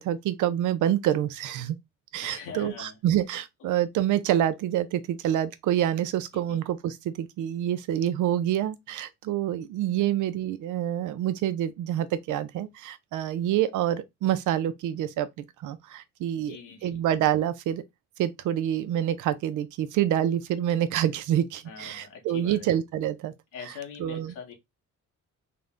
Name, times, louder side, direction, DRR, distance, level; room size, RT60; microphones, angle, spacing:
voice 1, 0.0-1.8 2.1-15.3 15.6-16.6 16.8-17.8 18.2-23.3 24.0-24.5, right 11 dB, 80° right, 0.6 m, -27 dB
voice 2, 2.2-3.0 6.3-6.6 10.0-10.1 16.3-17.0 21.6-22.8 23.5-24.5, left 6 dB, 90° left, 1.2 m, -43 dB
3.7 x 2.2 x 3.5 m
cardioid pair, 90°, 30 cm